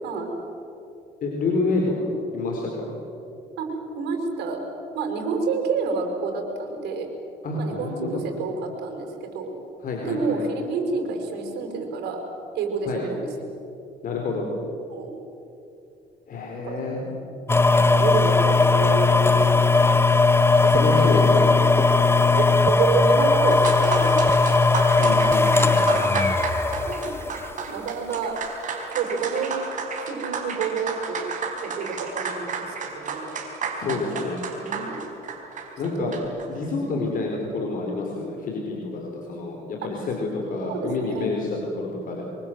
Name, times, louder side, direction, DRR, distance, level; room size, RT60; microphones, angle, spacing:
voice 1, 0.0-0.3 3.6-4.6 4.9-7.1 7.6-9.5 10.0-12.2 12.6-13.3 14.9-15.1 16.6-17.3 17.7-20.0 20.4-21.5 21.9-24.8 25.8-26.1 26.9-27.3 27.7-28.4 28.9-29.5 30.0-31.2 31.6-33.3 34.6-35.0 36.0-36.1 36.8-37.0 39.9-40.1 40.7-41.3, right 4 dB, 80° right, 3 dB, 5.8 m, -29 dB
voice 2, 1.2-2.9 7.4-8.2 9.8-10.4 12.8-13.0 14.0-14.5 16.3-17.0 20.7-21.5 25.0-25.7 33.7-34.4 35.8-36.2 36.5-42.2, left 3 dB, 55° left, 0 dB, 4.6 m, -28 dB
sound 1, 17.5-27.5 28.1-28.2, left 3 dB, 15° left, 1.1 m, -18 dB
sound 2, 23.5-36.5, right 5 dB, 50° right, 4.7 m, -32 dB
25.0 x 24.0 x 7.9 m, 2.9 s
cardioid pair, 110°, 17 cm